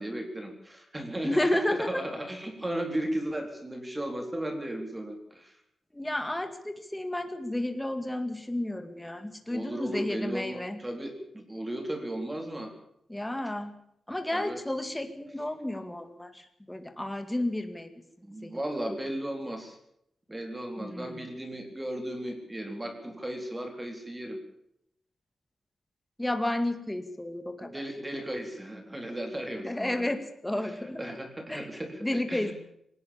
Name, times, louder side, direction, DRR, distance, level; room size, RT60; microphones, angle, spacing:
voice 1, 0.0-1.5 1.9-5.5 9.5-12.7 14.3-14.6 18.2-19.8 20.3-24.4 27.6-30.1 30.6-32.5, right 1 dB, 10° right, 5 dB, 4.0 m, -35 dB
voice 2, 1.2-1.9 5.9-10.8 13.1-13.7 14.1-17.9 18.4-18.8 20.8-21.3 26.2-27.8 29.6-31.0 31.5-31.7 32.0-32.5, left 1 dB, 10° left, 8 dB, 2.2 m, -32 dB
20.5 x 18.5 x 7.1 m, 0.74 s
wide cardioid pair, 160°, 0 cm